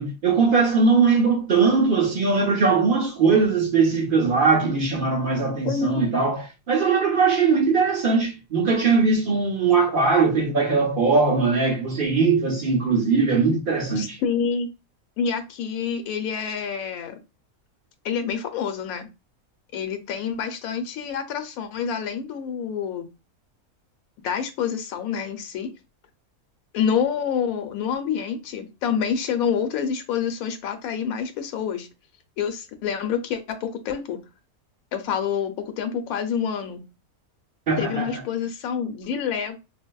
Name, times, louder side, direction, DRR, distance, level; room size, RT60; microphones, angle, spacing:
voice 1, 0.0-14.2 37.7-38.2, right 4 dB, 50° right, 0.7 m, -20 dB
voice 2, 5.6-6.0 14.0-14.7 15.2-17.2 18.0-19.1 19.7-23.1 24.2-25.7 26.7-31.9 32.4-34.2 34.9-36.8 37.8-39.6, left 7 dB, 80° left, 1.0 m, -27 dB
4.5 x 2.0 x 2.2 m
omnidirectional pair, 1.5 m